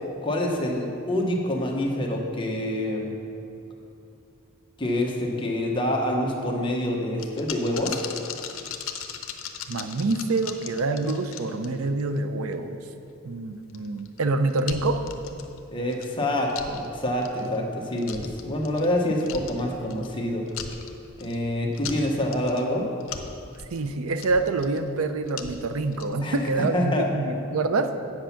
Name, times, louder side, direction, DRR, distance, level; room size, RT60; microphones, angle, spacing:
voice 1, 0.2-3.1 4.8-8.0 15.7-20.5 21.2-22.9 26.2-27.2, left 1 dB, 25° left, 0 dB, 1.1 m, -26 dB
sound 1, 7.2-12.2 12.5-12.6 13.7-14.2 14.5-15.6 15.9-16.1 16.5-16.9 17.2-17.6 18.0-18.9 19.2-20.2 20.5-21.4 21.7-22.6 23.0-24.8 25.3-26.2 26.5-26.6, left 8 dB, 75° left, 0.7 m, -37 dB
voice 2, 9.7-12.8 13.2-15.1 23.7-27.9, right 3 dB, 80° right, 9 dB, 0.5 m, -26 dB
8.1 x 7.7 x 5.8 m, 2.6 s
head